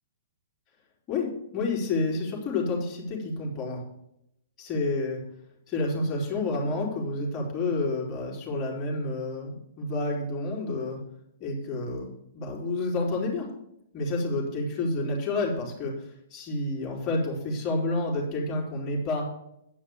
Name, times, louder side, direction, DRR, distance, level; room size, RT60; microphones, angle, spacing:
voice 1, 1.1-3.8 4.6-5.2 5.7-11.0 11.4-13.5 13.9-19.3, left 2 dB, 25° left, -3 dB, 3.9 m, -29 dB
10.0 x 5.6 x 7.0 m, 0.79 s
figure-of-eight pair, 115°, 0 cm